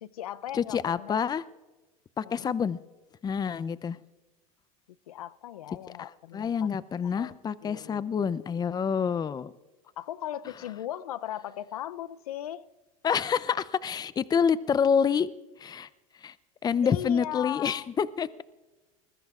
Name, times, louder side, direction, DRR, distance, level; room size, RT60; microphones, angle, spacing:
voice 1, 0.0-1.2 2.2-2.5 5.1-6.7 7.2-7.4 7.6-8.2 10.0-12.6 16.8-17.9, left 12 dB, 85° left, 0.6 m, -38 dB
voice 2, 0.5-1.4 2.2-2.8 3.2-4.0 6.0-9.5 13.0-15.3 15.6-15.9 16.2-16.3 16.6-18.4, left 7 dB, 20° left, 0.6 m, -27 dB
25.5 x 20.5 x 2.5 m
hypercardioid pair, 95°, 18 cm